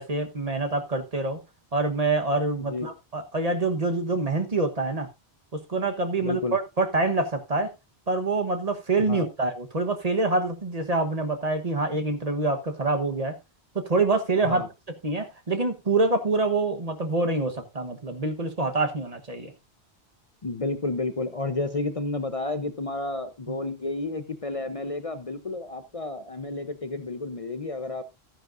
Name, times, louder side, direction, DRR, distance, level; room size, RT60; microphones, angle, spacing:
voice 1, 0.0-1.4 1.7-5.1 5.5-7.7 8.1-13.4 13.7-14.6 15.0-19.5, right 3 dB, 40° right, 1.2 m, -26 dB
voice 2, 6.2-6.6 9.0-9.3 14.4-14.7 20.4-28.0, left 3 dB, 35° left, 0.8 m, -31 dB
13.5 x 10.0 x 2.5 m
omnidirectional pair, 1.1 m